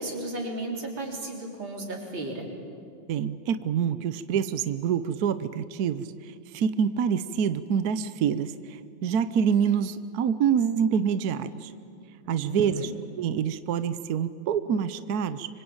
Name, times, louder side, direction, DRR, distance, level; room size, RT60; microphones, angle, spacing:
voice 1, 0.0-2.5 12.2-12.9, right 2 dB, 85° right, 0 dB, 4.8 m, -34 dB
voice 2, 3.1-6.1 6.5-11.7 12.3-12.9 13.2-15.5, right 7 dB, 60° right, 12 dB, 1.2 m, -26 dB
26.0 x 25.5 x 8.8 m, 2.4 s
omnidirectional pair, 2.1 m